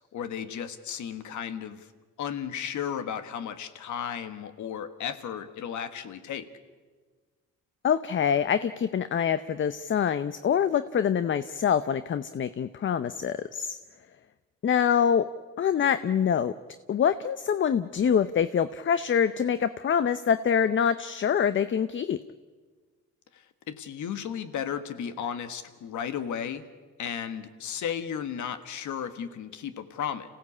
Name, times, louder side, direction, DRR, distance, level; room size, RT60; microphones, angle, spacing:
voice 1, 0.1-1.9 2.2-6.5 23.3-26.6 27.0-30.3, left 8 dB, 75° left, 11 dB, 1.5 m, -34 dB
voice 2, 7.8-13.8 14.6-15.3 15.6-16.5 16.9-22.2, left 8 dB, 40° left, 13 dB, 0.7 m, -25 dB
27.0 x 16.0 x 8.5 m, 1.4 s
cardioid pair, 90°, 30 cm